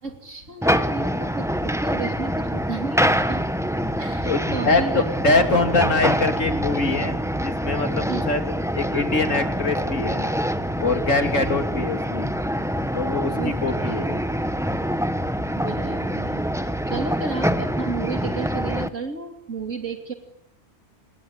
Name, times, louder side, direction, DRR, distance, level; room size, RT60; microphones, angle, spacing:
voice 1, 0.0-3.4 4.0-5.0 8.1-8.2 13.3-14.0 15.6-20.1, right 4 dB, 80° right, 5 dB, 3.2 m, -32 dB
sound 1, 0.6-18.9, equal, 5° right, 1.1 m, -25 dB
voice 2, 4.2-8.4 8.7-10.3 10.8-12.3 12.9-14.3, left 3 dB, 90° left, 6 dB, 3.4 m, -24 dB
28.0 x 21.0 x 9.7 m, 0.72 s
omnidirectional pair, 1.3 m